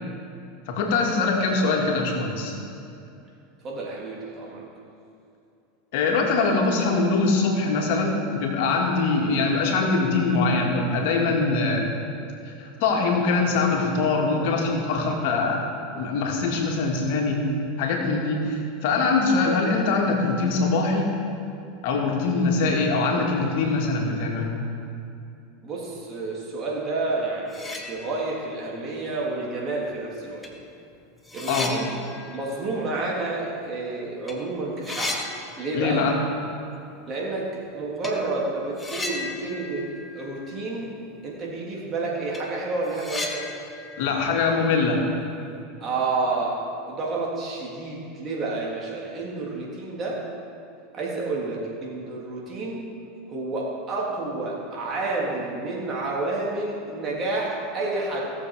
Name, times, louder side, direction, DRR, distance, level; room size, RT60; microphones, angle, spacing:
voice 1, 0.7-2.6 5.9-11.9 12.6-15.6 15.9-17.4 17.8-21.1 21.8-24.6 31.5-31.7 35.7-36.2 44.0-45.0, left 3 dB, 70° left, 1 dB, 2.0 m, -23 dB
voice 2, 3.6-4.6 25.6-30.5 31.3-32.0 32.3-35.2 35.6-36.0 37.1-39.9 40.1-40.9 41.2-43.5 45.8-46.6 46.9-50.2 50.9-52.8 53.3-58.2, right 3 dB, 35° right, -3 dB, 3.2 m, -29 dB
sound 1, 27.1-27.2 27.4-28.5 28.9-29.0 29.9-30.0 30.4-33.9 34.1-34.4 34.6-36.2 36.4-36.5 38.0-38.2 38.8-40.9 41.2-41.3 41.7-41.8 42.1-45.3, left 2 dB, 15° left, 1.3 m, -36 dB
17.0 x 7.2 x 4.9 m, 2.7 s
hypercardioid pair, 105°, 0 cm